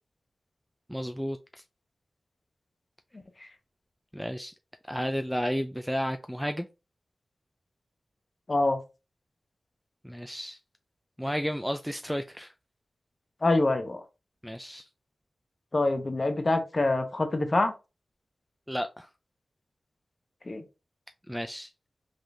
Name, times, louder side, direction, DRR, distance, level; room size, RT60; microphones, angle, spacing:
voice 1, 0.9-1.4 4.1-4.5 4.9-6.7 10.0-10.6 11.2-12.5 14.4-14.9 18.7-19.1 21.3-21.7, equal, ahead, 6 dB, 0.3 m, -32 dB
voice 2, 8.5-8.8 13.4-14.0 15.7-17.7 20.5-20.6, left 2 dB, 35° left, 6 dB, 1.0 m, -25 dB
5.1 x 3.8 x 2.7 m, 0.28 s
wide cardioid pair, 120°, 0 cm